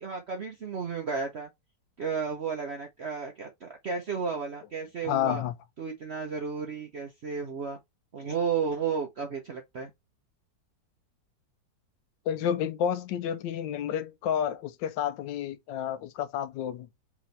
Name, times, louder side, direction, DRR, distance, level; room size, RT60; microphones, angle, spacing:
voice 1, 0.0-1.5 2.0-5.4 5.8-7.8 8.1-9.9, right 5 dB, 55° right, 0.7 m, -33 dB
voice 2, 5.0-5.5 12.3-16.9, left 9 dB, 85° left, 1.3 m, -30 dB
5.0 x 3.0 x 3.2 m
omnidirectional pair, 1.9 m